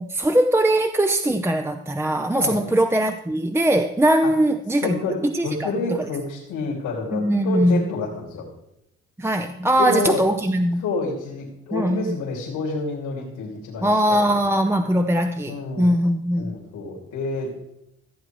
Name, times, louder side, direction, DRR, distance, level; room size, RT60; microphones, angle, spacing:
voice 1, 0.0-5.7 6.0-6.1 7.1-7.8 9.2-10.8 11.7-12.1 13.8-16.5, right 1 dB, 10° right, 6 dB, 0.6 m, -21 dB
voice 2, 4.8-8.5 9.8-10.2 10.8-14.4 15.4-15.9 16.4-17.5, left 3 dB, 85° left, -4 dB, 3.2 m, -28 dB
15.5 x 7.8 x 4.6 m, 0.82 s
cardioid pair, 90°, 30 cm